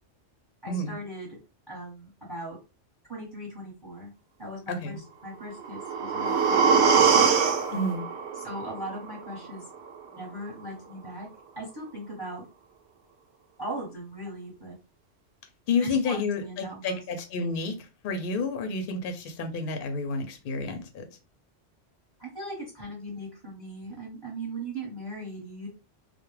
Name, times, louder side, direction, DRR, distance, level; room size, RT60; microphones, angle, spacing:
voice 1, 0.6-1.4 1.7-2.6 3.1-4.1 4.4-7.3 8.3-9.6 10.1-11.3 11.6-12.4 13.6-14.7 15.8-17.0 22.2-25.7, right 1 dB, 25° right, 0.8 m, -39 dB
voice 2, 4.7-5.0 7.7-8.0 15.7-17.8 18.0-21.0, left 3 dB, 60° left, 0.6 m, -30 dB
sound 1, 5.5-9.5 9.9-10.0, right 6 dB, 70° right, 0.8 m, -23 dB
2.2 x 2.1 x 3.1 m
omnidirectional pair, 1.2 m